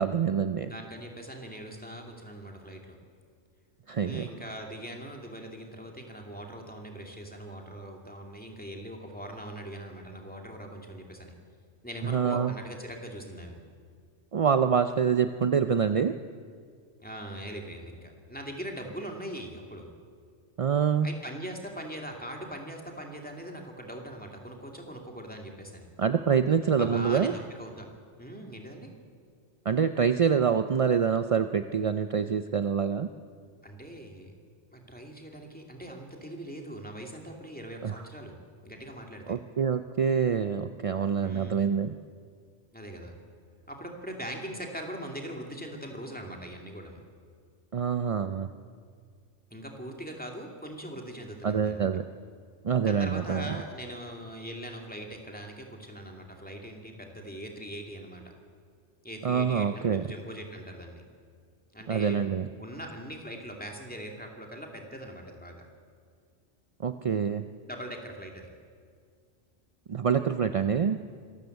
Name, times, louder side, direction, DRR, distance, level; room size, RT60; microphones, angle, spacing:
voice 1, 0.0-0.7 3.9-4.2 12.0-12.5 14.3-16.2 20.6-21.1 26.0-27.3 29.7-33.1 37.8-37.9 39.3-41.9 47.7-48.5 51.4-52.0 52.6-53.6 59.2-60.0 61.9-62.5 66.8-67.4 69.9-71.0, right 7 dB, 45° right, 9 dB, 0.4 m, -26 dB
voice 2, 0.7-3.0 4.0-11.3 11.8-13.6 17.0-19.9 21.0-25.9 26.8-27.9 28.2-28.9 33.6-34.3 34.7-38.4 38.6-39.4 41.2-41.7 42.7-43.1 43.7-47.0 49.5-51.9 52.8-58.3 59.0-61.0 61.7-62.2 62.6-65.6 67.7-68.5, equal, 5° left, 1 dB, 2.6 m, -41 dB
25.5 x 13.5 x 8.1 m, 2.1 s
omnidirectional pair, 1.2 m